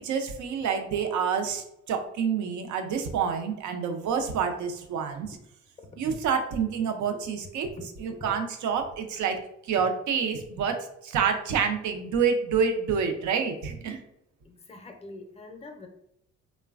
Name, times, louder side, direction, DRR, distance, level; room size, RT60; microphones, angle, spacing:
voice 1, 0.0-5.4 6.0-7.7 8.0-9.4 9.6-10.8 11.0-14.0, right 6 dB, 70° right, 6 dB, 0.5 m, -28 dB
voice 2, 14.4-15.9, left 2 dB, 20° left, 4 dB, 0.5 m, -44 dB
3.1 x 2.1 x 2.3 m, 0.78 s
cardioid pair, 90°, 30 cm